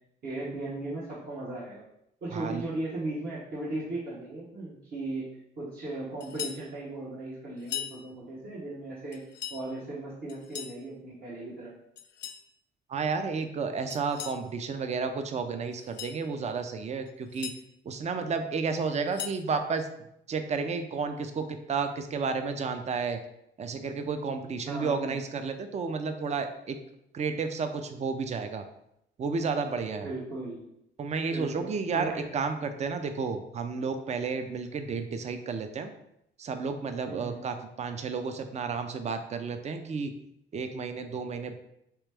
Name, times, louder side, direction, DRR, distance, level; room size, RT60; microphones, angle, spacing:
voice 1, 0.2-1.8 2.2-5.3 5.6-9.2 9.5-11.7 24.7-25.2 30.0-30.7 31.3-32.3 37.1-37.4, right 2 dB, 55° right, -9 dB, 1.1 m, -37 dB
voice 2, 2.3-2.6 12.9-17.5 17.9-19.9 20.3-23.2 23.6-26.8 27.1-28.6 29.2-30.1 31.0-35.9 36.4-40.1 40.5-41.6, right 5 dB, 35° right, 8 dB, 0.4 m, -32 dB
sound 1, 6.2-6.6 7.6-8.0 9.1-9.6 10.3-10.8 12.0-12.4 13.9-14.4 15.7-16.2 17.1-17.6 18.9-19.4, left 10 dB, 60° left, 0.5 m, -39 dB
3.3 x 3.0 x 3.4 m, 0.78 s
cardioid pair, 90°, 20 cm